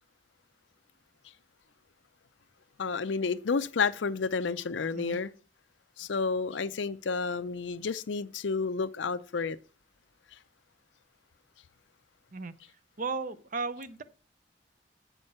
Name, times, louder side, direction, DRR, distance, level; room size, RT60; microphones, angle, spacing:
voice 1, 2.8-5.3 6.0-9.6, left 4 dB, 85° left, 0.5 m, -30 dB
voice 2, 13.0-14.0, right 4 dB, 45° right, 0.6 m, -35 dB
8.1 x 5.4 x 5.5 m
head